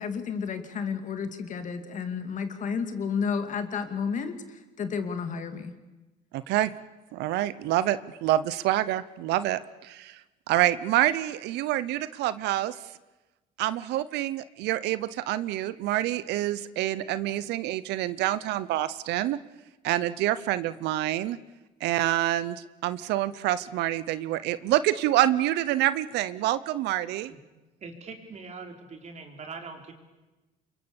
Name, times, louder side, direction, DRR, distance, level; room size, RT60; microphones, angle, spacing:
voice 1, 0.0-5.7, left 6 dB, 50° left, 8 dB, 2.4 m, -31 dB
voice 2, 6.3-6.7 7.1-10.2 10.5-12.7 13.6-19.4 19.8-21.4 21.8-27.3, right 14 dB, 85° right, 16 dB, 0.7 m, -27 dB
voice 3, 27.8-29.9, right 4 dB, 45° right, 4 dB, 4.1 m, -42 dB
27.5 x 23.0 x 7.1 m, 1.1 s
cardioid pair, 110°, 17 cm